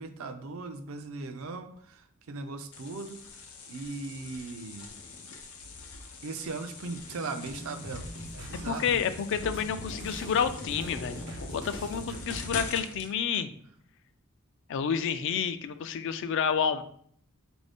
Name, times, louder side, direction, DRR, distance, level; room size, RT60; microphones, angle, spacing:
voice 1, 0.0-3.2 3.7-4.9 6.2-9.0, right 3 dB, 70° right, 8 dB, 0.4 m, -38 dB
sound 1, 2.7-13.1, left 4 dB, 85° left, 0.6 m, -43 dB
sound 2, 7.1-12.7, equal, 90° right, 0.8 m, -42 dB
voice 2, 8.7-13.5 14.7-16.8, left 7 dB, 60° left, 11 dB, 0.3 m, -29 dB
4.1 x 2.6 x 3.5 m, 0.63 s
head